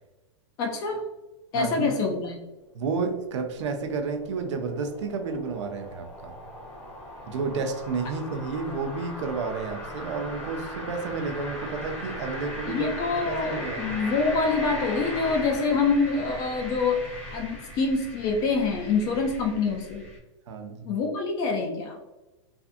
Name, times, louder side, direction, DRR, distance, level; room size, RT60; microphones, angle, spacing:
voice 1, 0.6-1.0 1.5-2.4 12.7-17.0 17.3-20.0 20.9-22.0, left 4 dB, 25° left, 1 dB, 0.4 m, -26 dB
voice 2, 1.5-1.9 2.7-6.3 7.3-12.9 13.3-13.9 20.5-20.9, right 4 dB, 70° right, 5 dB, 0.5 m, -31 dB
sound 1, 2.6-20.2, left 1 dB, 5° left, 0.7 m, -39 dB
2.5 x 2.4 x 2.4 m, 1.1 s
hypercardioid pair, 150°, 16 cm